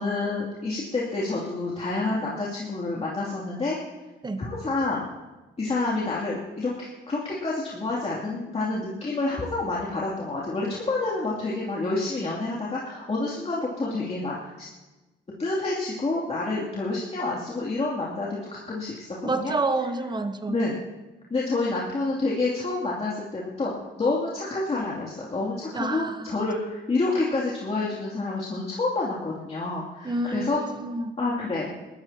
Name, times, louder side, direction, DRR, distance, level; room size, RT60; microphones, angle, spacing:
voice 1, 0.0-3.8 4.4-5.0 5.6-14.7 15.4-19.5 20.5-20.7 21.3-23.7 24.0-30.6 31.2-32.0, left 3 dB, 30° left, -5 dB, 2.8 m, -28 dB
voice 2, 19.2-20.6 25.7-26.4 30.0-31.2, right 2 dB, 20° right, 8 dB, 1.2 m, -29 dB
20.5 x 14.0 x 2.9 m, 1.1 s
cardioid pair, 90°, 20 cm